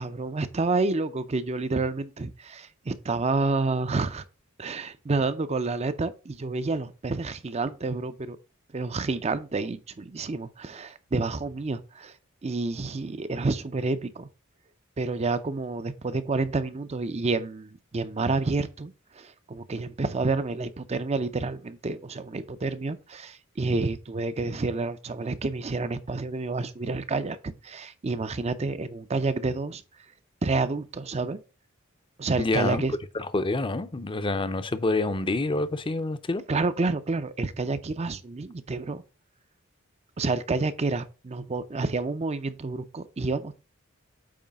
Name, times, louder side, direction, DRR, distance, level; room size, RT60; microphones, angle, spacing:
voice 1, 0.0-4.2 4.6-8.4 8.7-12.1 12.4-14.3 15.0-29.8 30.4-31.4 32.2-32.9 36.5-39.0 40.2-43.6, right 3 dB, 30° right, 0.5 m, -29 dB
voice 2, 32.4-32.8 33.1-36.4, left 2 dB, 25° left, 0.6 m, -27 dB
8.6 x 3.2 x 5.2 m
head